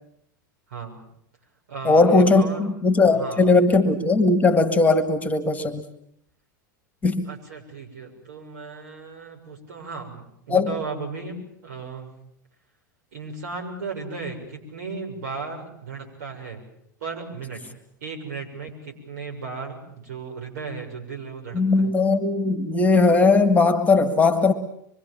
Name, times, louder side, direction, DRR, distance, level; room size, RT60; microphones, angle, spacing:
voice 1, 0.7-1.0 1.7-2.7 3.1-3.4 7.3-12.1 13.1-16.6 17.0-17.6 18.0-21.9, right 4 dB, 60° right, 2 dB, 7.2 m, -35 dB
voice 2, 1.8-5.8 7.0-7.3 10.5-10.7 21.5-24.5, left 3 dB, 15° left, 11 dB, 1.9 m, -18 dB
25.5 x 23.5 x 7.4 m, 0.73 s
figure-of-eight pair, 90°, 11 cm